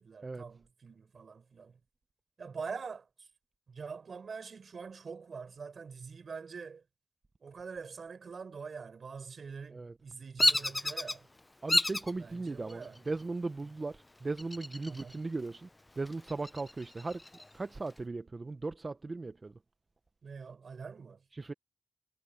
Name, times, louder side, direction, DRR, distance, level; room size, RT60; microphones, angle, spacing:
voice 1, 0.0-1.8 2.4-3.3 3.7-6.8 7.4-11.3 12.2-13.0 14.9-15.2 20.2-21.2, right 5 dB, 70° right, 4.8 m, -45 dB
Bird vocalization bird call bird song, 10.4-11.2 11.7-12.1 12.7-13.2 14.4-15.1 15.5-15.6 16.1-17.5, left 2 dB, 20° left, 0.7 m, -30 dB
voice 2, 11.6-15.7 16.0-17.2 17.5-19.5 21.3-21.5, right 3 dB, 40° right, 0.8 m, -37 dB
wide cardioid pair, 80°, 0 cm